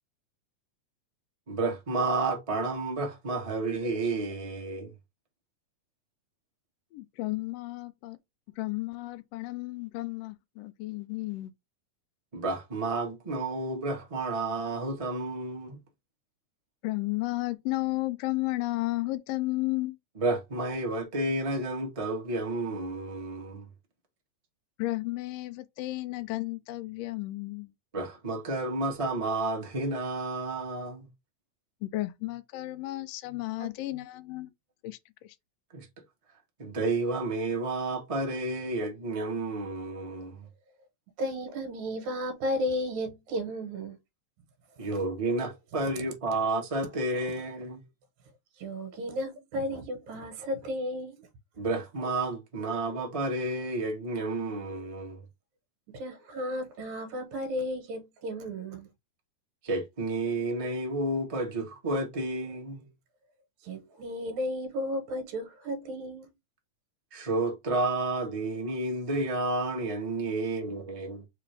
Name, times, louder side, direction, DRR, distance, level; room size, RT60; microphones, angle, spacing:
voice 1, 1.5-4.9 12.3-15.8 20.2-23.7 27.9-31.1 33.6-33.7 35.7-35.9 36.6-40.5 44.8-47.8 51.6-55.2 59.6-62.9 67.1-71.2, right 2 dB, 25° right, 0.8 m, -31 dB
voice 2, 6.9-8.2 8.6-11.5 16.8-20.0 24.8-27.7 31.8-34.5 34.8-35.3, left 19 dB, 80° left, 1.4 m, -33 dB
voice 3, 41.2-44.0 48.6-51.2 55.9-58.9 63.6-66.3, equal, 75° right, 2.6 m, -34 dB
4.9 x 3.1 x 3.4 m
omnidirectional pair, 3.4 m